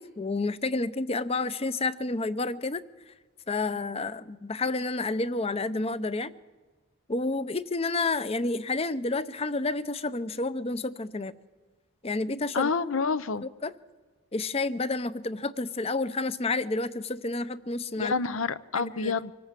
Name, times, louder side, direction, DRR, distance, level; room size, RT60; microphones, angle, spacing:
voice 1, 0.0-3.1 3.5-6.3 7.1-11.3 12.0-12.7 13.4-13.7 14.3-18.1 18.7-19.1, left 3 dB, 30° left, 0.6 m, -30 dB
voice 2, 12.5-13.4 18.0-19.3, left 4 dB, 75° left, 0.7 m, -28 dB
25.0 x 17.5 x 7.5 m
head